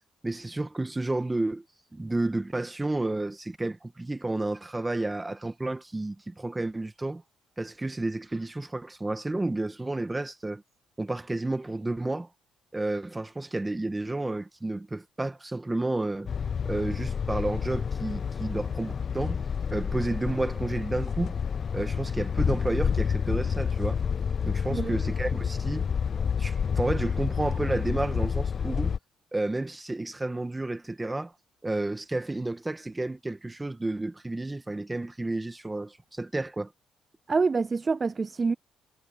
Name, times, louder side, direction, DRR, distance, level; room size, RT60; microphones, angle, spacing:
voice 1, 0.2-1.6 1.9-7.2 7.6-10.6 11.0-12.3 12.7-16.3 16.6-19.4 19.7-21.4 21.7-24.0 24.4-25.9 26.4-29.0 29.3-31.3 31.6-36.7, right 2 dB, 15° right, 2.0 m, -31 dB
sound 1, 16.3-29.0, left 6 dB, 45° left, 0.4 m, -29 dB
voice 2, 37.3-38.6, right 4 dB, 30° right, 0.3 m, -26 dB
cardioid pair, 90°, 0 cm